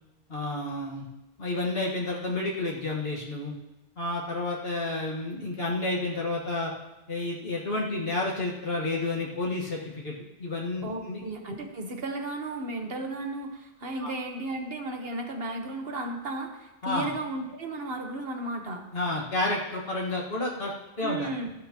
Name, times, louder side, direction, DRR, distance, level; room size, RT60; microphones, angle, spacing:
voice 1, 0.3-1.0 1.4-3.5 4.0-6.7 7.1-10.1 10.4-11.2 14.0-14.1 16.8-17.1 18.9-21.3, left 2 dB, 70° left, -4 dB, 1.9 m, -30 dB
voice 2, 10.8-18.8 21.0-21.5, right 2 dB, 70° right, 3 dB, 1.5 m, -34 dB
15.5 x 11.5 x 3.0 m, 0.99 s
omnidirectional pair, 1.0 m